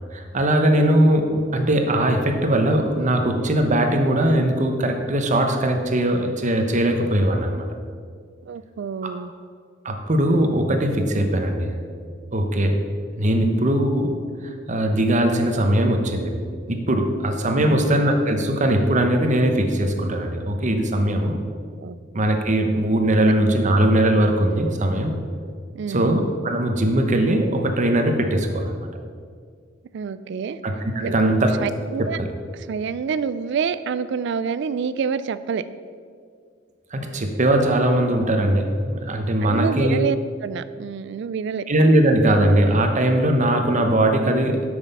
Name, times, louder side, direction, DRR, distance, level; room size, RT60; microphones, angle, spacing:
voice 1, 0.1-7.7 9.8-11.7 12.3-12.8 13.2-14.2 14.7-16.3 16.7-21.4 22.1-25.1 25.9-28.9 30.6-30.7 31.0-31.5 32.0-32.3 36.9-40.0 41.7-44.6, right 1 dB, 40° right, 4 dB, 0.9 m, -20 dB
voice 2, 8.4-9.3 17.5-18.1 21.5-22.0 25.7-26.1 29.9-30.6 31.0-31.3 31.6-32.2 32.5-35.6 39.4-41.7, right 6 dB, 65° right, 14 dB, 0.3 m, -27 dB
9.1 x 6.3 x 5.4 m, 2.1 s
head